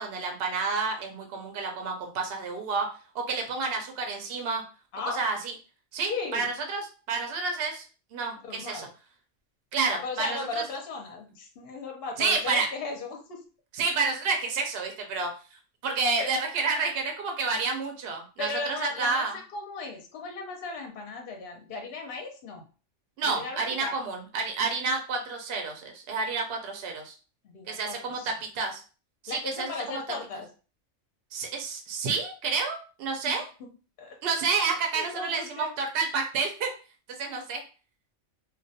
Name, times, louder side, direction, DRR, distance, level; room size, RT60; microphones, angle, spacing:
voice 1, 0.0-2.9 3.1-4.6 5.1-5.5 5.9-7.8 8.1-8.9 9.7-10.6 12.2-12.7 13.7-19.4 23.2-27.1 27.7-28.8 29.2-30.0 31.3-33.5 34.2-36.7 37.2-37.6, right 4 dB, 65° right, 2 dB, 0.7 m, -30 dB
voice 2, 6.0-6.5 8.4-8.9 9.9-13.4 16.2-16.3 18.4-22.6 23.2-24.0 27.4-28.3 29.3-30.5 33.3-33.4 34.0-34.2 34.9-35.7, left 3 dB, 60° left, 2 dB, 0.7 m, -36 dB
2.3 x 2.2 x 2.6 m, 0.36 s
omnidirectional pair, 1.3 m